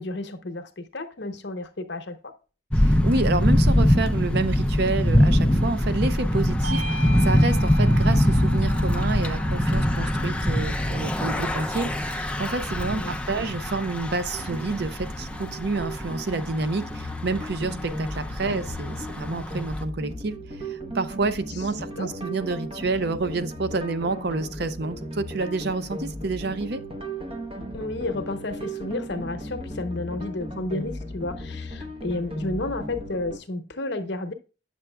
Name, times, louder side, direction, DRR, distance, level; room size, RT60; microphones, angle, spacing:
voice 1, 0.0-2.3 12.9-13.5 18.4-18.6 22.0-22.1 27.7-34.3, left 2 dB, 60° left, 0.9 m, -32 dB
Thunder / Bicycle, 2.7-19.8, equal, 5° left, 0.4 m, -23 dB
voice 2, 2.7-26.8, right 3 dB, 55° right, 0.5 m, -29 dB
Bell / Doorbell, 6.6-11.5, right 1 dB, 80° right, 1.8 m, -39 dB
sound 1, 14.3-33.4, equal, 30° right, 0.9 m, -36 dB
8.7 x 6.8 x 2.3 m
head